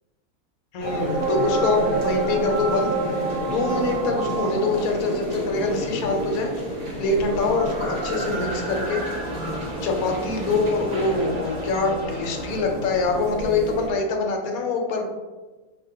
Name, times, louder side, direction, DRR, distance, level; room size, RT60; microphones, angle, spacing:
voice 1, 0.7-2.9 3.4-6.5 7.0-9.0 9.8-15.1, left 3 dB, 75° left, 2 dB, 1.1 m, -24 dB
sound 1, 0.8-11.7, right 3 dB, 45° right, 1.1 m, -31 dB
sound 2, 0.8-13.9, equal, 65° right, 1.2 m, -31 dB
sound 3, 8.2-12.6, equal, 25° right, 0.7 m, -39 dB
4.5 x 2.6 x 2.7 m, 1.2 s
omnidirectional pair, 1.6 m